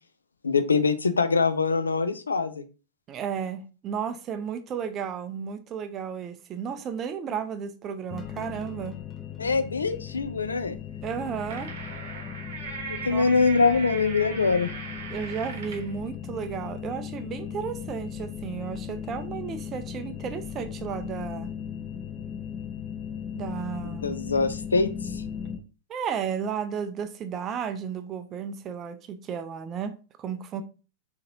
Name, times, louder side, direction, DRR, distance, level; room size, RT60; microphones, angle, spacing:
voice 1, 0.4-2.6 9.4-10.8 12.9-14.7 23.8-25.2, left 4 dB, 75° left, 0.4 m, -24 dB
voice 2, 3.1-9.0 11.0-11.7 13.1-13.3 15.1-21.5 23.3-24.2 25.9-30.6, right 7 dB, 30° right, 0.4 m, -33 dB
sound 1, 8.1-25.6, left 8 dB, 20° left, 0.6 m, -37 dB
sound 2, 11.1-15.9, right 5 dB, 60° right, 0.8 m, -39 dB
3.8 x 2.8 x 2.8 m
figure-of-eight pair, 90°, 0 cm